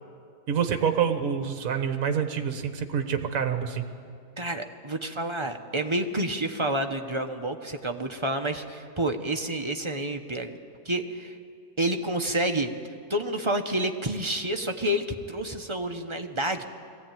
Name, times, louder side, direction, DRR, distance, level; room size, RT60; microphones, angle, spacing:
voice 1, 0.5-3.8, right 7 dB, 60° right, 7 dB, 1.6 m, -27 dB
voice 2, 4.4-10.6 10.8-11.4 11.8-12.7 13.1-16.6, right 1 dB, 25° right, 5 dB, 0.7 m, -29 dB
21.0 x 15.5 x 9.1 m, 2.4 s
omnidirectional pair, 1.7 m